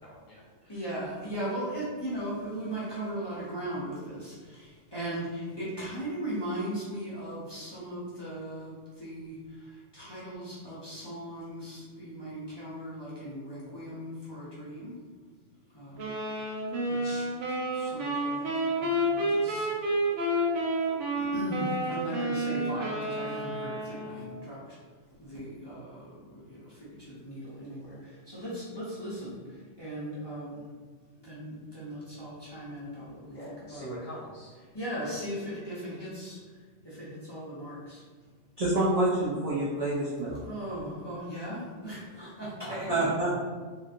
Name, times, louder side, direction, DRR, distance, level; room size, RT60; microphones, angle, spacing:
voice 1, 0.0-0.8 33.3-34.6 35.0-35.1 42.6-42.7, equal, 45° left, -7 dB, 0.9 m, -43 dB
voice 2, 0.7-15.0 15.7-16.5 16.9-19.9 21.2-24.8 25.2-30.7 31.2-33.9 34.7-38.0 40.4-43.1, right 1 dB, 25° left, -10 dB, 0.6 m, -38 dB
sound 1, 16.0-24.3, right 1 dB, 75° right, 0.9 m, -30 dB
voice 3, 38.6-40.4 42.9-43.3, right 1 dB, 50° right, -8 dB, 0.4 m, -27 dB
3.0 x 2.5 x 2.5 m, 1.5 s
omnidirectional pair, 1.3 m